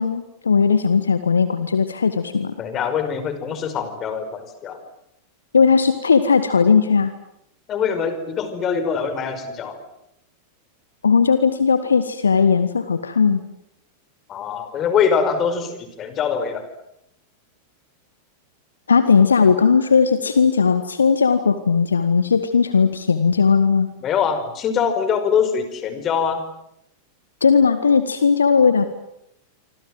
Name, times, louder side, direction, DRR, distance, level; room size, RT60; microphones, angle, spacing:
voice 1, 0.0-2.5 5.5-7.1 11.0-13.4 18.9-23.9 27.4-28.9, left 5 dB, 75° left, 11 dB, 1.7 m, -17 dB
voice 2, 2.6-4.8 7.7-9.8 14.3-16.7 24.0-26.4, left 7 dB, 30° left, 10 dB, 5.1 m, -23 dB
27.5 x 25.5 x 7.8 m, 0.79 s
figure-of-eight pair, 90°, 0 cm